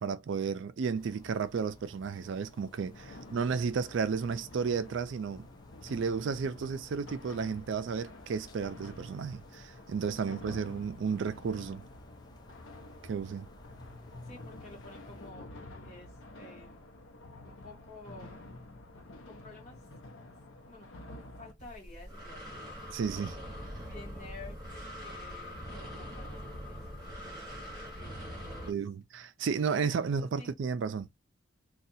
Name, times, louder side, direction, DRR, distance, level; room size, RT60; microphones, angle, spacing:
voice 1, 0.0-5.5 5.8-11.8 13.0-13.5 22.9-23.4 28.7-31.2, right 5 dB, 60° right, 0.3 m, -33 dB
sound 1, 0.9-15.3, left 1 dB, 20° left, 0.4 m, -56 dB
sound 2, 2.9-21.5, left 2 dB, 75° left, 0.7 m, -49 dB
voice 2, 3.1-3.4 10.3-10.4 14.2-15.5 15.8-16.9 17.4-18.4 19.2-19.9 20.7-20.9 21.4-22.6 23.8-24.6 25.0-27.6 27.9-28.7 29.9-30.5, left 2 dB, 35° left, 1.6 m, -52 dB
Breathing, 21.6-28.7, equal, 20° right, 1.5 m, -43 dB
2.7 x 2.3 x 4.0 m
head